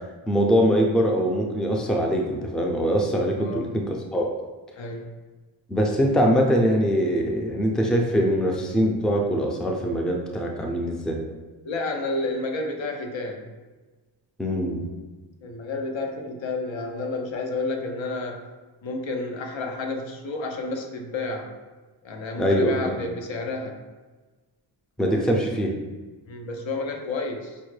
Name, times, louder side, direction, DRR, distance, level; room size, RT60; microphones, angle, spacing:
voice 1, 0.3-4.3 5.7-11.2 14.4-14.9 22.4-22.9 25.0-25.7, equal, ahead, 1 dB, 0.3 m, -23 dB
voice 2, 4.8-5.1 11.6-13.5 15.4-18.4 18.8-21.5 22.0-23.9 26.3-27.6, left 3 dB, 80° left, 2 dB, 0.7 m, -30 dB
5.3 x 2.1 x 3.2 m, 1.3 s
wide cardioid pair, 100°, 45 cm